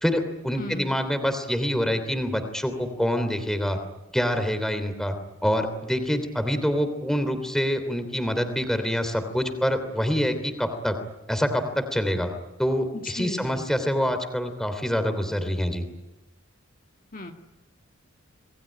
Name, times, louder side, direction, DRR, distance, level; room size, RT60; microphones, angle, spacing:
voice 1, 0.0-3.8 4.1-5.2 5.4-11.0 11.3-12.3 12.6-15.9, equal, ahead, 8 dB, 3.1 m, -26 dB
voice 2, 0.6-0.9 12.9-13.7 17.1-17.3, left 1 dB, 40° left, 3 dB, 1.9 m, -35 dB
27.5 x 21.0 x 10.0 m, 1.0 s
head